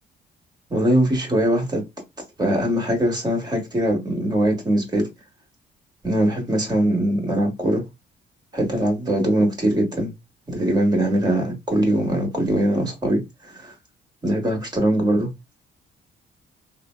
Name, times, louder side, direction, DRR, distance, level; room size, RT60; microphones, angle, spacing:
voice 1, 0.7-1.8 2.4-5.1 6.0-7.8 8.5-10.1 10.5-13.7 14.2-15.3, right 1 dB, 20° right, 1.4 m, -21 dB
3.2 x 2.1 x 2.2 m
cardioid pair, 90°, 20 cm